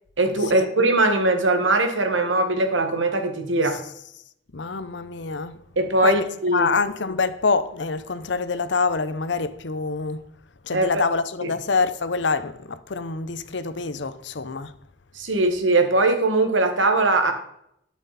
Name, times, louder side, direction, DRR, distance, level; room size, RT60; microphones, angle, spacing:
voice 1, 0.2-3.8 5.8-6.7 10.7-10.9 11.4-11.5 15.2-17.3, right 2 dB, 90° right, 1.7 m, -21 dB
voice 2, 4.5-5.6 6.0-6.2 6.5-10.2 10.7-14.7, left 4 dB, 75° left, 0.7 m, -25 dB
12.5 x 6.2 x 4.1 m
head